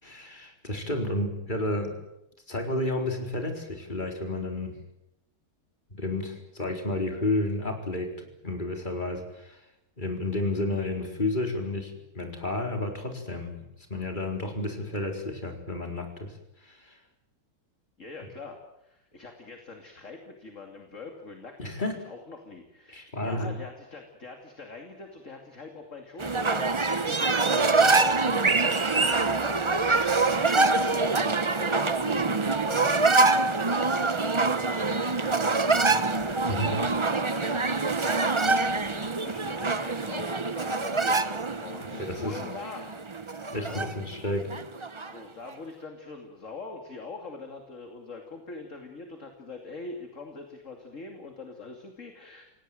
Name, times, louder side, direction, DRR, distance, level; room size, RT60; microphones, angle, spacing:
voice 1, 0.0-2.0 2.5-4.8 5.9-9.6 10.0-16.3 16.6-17.0 21.6-22.0 22.9-23.5 36.5-36.7 42.0-42.4 43.5-44.4, left 1 dB, 20° left, 4 dB, 4.4 m, -31 dB
voice 2, 18.0-43.9 45.0-52.4, left 3 dB, 40° left, 4 dB, 2.9 m, -43 dB
sound 1, 26.2-45.1, right 3 dB, 40° right, 0.4 m, -25 dB
28.0 x 18.0 x 9.3 m, 0.83 s
omnidirectional pair, 2.2 m